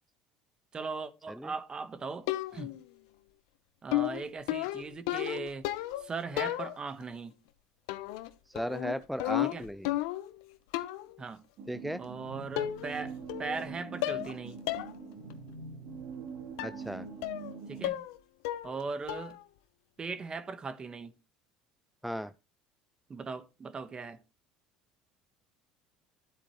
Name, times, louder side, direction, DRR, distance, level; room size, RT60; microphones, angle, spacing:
voice 1, 0.7-2.7 3.8-5.7 6.0-7.3 9.4-9.6 11.2-11.5 12.0-14.6 17.7-18.0 18.6-19.4 20.0-21.1 23.1-24.2, right 4 dB, 30° right, 1.4 m, -39 dB
sound 1, 2.3-2.8 3.9-6.1 6.4-7.0 7.9-8.3 8.6-10.4 10.7-11.1 12.0-12.1 12.6-13.0 13.3-13.7 14.0-14.3 14.7-14.9 15.3-15.4 16.6-16.8 17.2-17.5 17.8-18.2 18.4-18.8 19.1-19.4, left 15 dB, 80° left, 1.0 m, -33 dB
voice 2, 8.5-9.9 11.7-12.0 16.6-17.1 22.0-22.3, equal, ahead, 0.5 m, -36 dB
sound 2, 11.6-17.9, right 5 dB, 60° right, 3.6 m, -44 dB
12.5 x 8.3 x 3.2 m
supercardioid pair, 90°, 3 cm